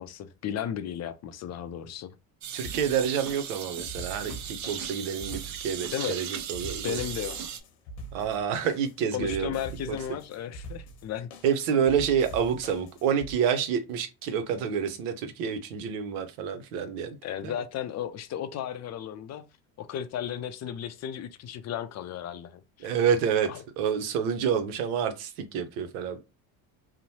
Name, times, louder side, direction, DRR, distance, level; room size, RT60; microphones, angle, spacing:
voice 1, 0.0-2.1 5.9-6.2 6.8-7.5 9.1-11.3 17.2-19.4 19.8-22.9 23.5-23.6, left 9 dB, 40° left, 0.4 m, -35 dB
sound 1, 2.4-7.6, right 8 dB, 45° right, 0.5 m, -37 dB
voice 2, 2.5-7.0 8.1-9.6 9.9-10.0 11.4-17.2 17.4-17.5 22.8-23.5 23.8-26.2, right 7 dB, 85° right, 0.7 m, -28 dB
sound 2, 2.6-13.3, right 2 dB, 90° left, 0.9 m, -43 dB
2.9 x 2.1 x 2.7 m
supercardioid pair, 80°, 42 cm